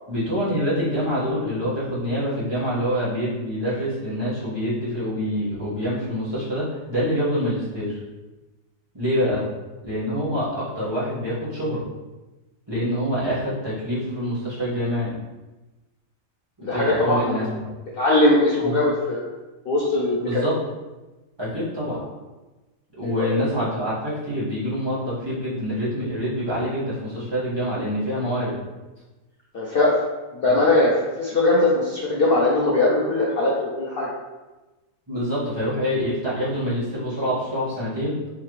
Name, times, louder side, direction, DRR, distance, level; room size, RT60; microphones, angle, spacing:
voice 1, 0.1-8.0 8.9-9.4 9.8-11.8 12.7-15.1 16.7-17.7 18.6-18.7 20.2-20.6 21.4-22.0 23.0-28.5 30.5-30.6 35.1-38.2, equal, 15° right, -11 dB, 1.3 m, -26 dB
voice 2, 16.6-17.5 17.9-19.3 19.6-20.4 23.0-23.4 29.5-29.9 30.3-30.9 31.2-34.1, left 2 dB, 75° left, -5 dB, 0.5 m, -20 dB
3.8 x 3.3 x 3.1 m, 1.1 s
omnidirectional pair, 1.7 m